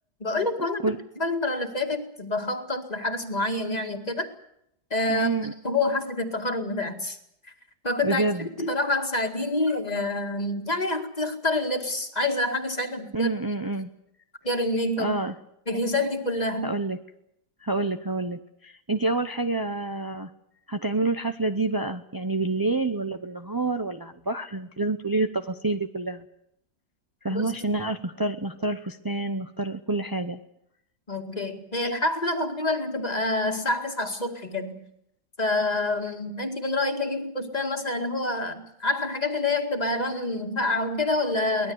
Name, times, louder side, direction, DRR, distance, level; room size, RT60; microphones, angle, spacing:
voice 1, 0.2-0.8 1.2-4.3 4.9-5.3 5.6-7.2 7.8-13.3 14.4-15.1 15.7-16.7 27.3-27.5 31.1-34.7 35.4-41.7, left 2 dB, 25° left, 4 dB, 2.2 m, -27 dB
voice 2, 5.1-5.5 8.0-8.5 13.1-13.9 15.0-15.3 16.6-17.0 17.6-20.3 20.7-26.2 27.2-30.4 31.8-31.9, right 3 dB, 30° right, 7 dB, 0.4 m, -28 dB
23.5 x 19.0 x 7.9 m, 0.80 s
omnidirectional pair, 1.8 m